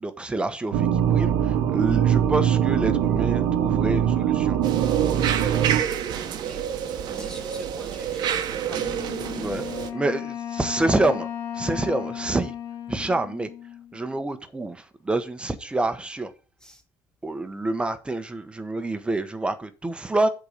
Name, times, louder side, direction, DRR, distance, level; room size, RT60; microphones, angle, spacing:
voice 1, 0.0-1.3 1.7-4.6 7.1-7.3 9.3-9.6 9.9-11.3 11.5-12.5 12.9-13.5 13.9-16.3 17.2-20.3, right 2 dB, 15° right, 1.0 m, -27 dB
sound 1, 0.7-5.8, right 9 dB, 85° right, 1.2 m, -22 dB
sound 2, 4.6-9.9, right 8 dB, 65° right, 1.0 m, -28 dB
voice 2, 6.3-6.6 7.1-9.0 16.6-16.8, left 1 dB, 10° left, 0.7 m, -45 dB
Wind instrument woodwind instrument, 8.8-14.2, left 9 dB, 75° left, 1.7 m, -35 dB
8.0 x 3.9 x 6.6 m
cardioid pair, 115°, 8 cm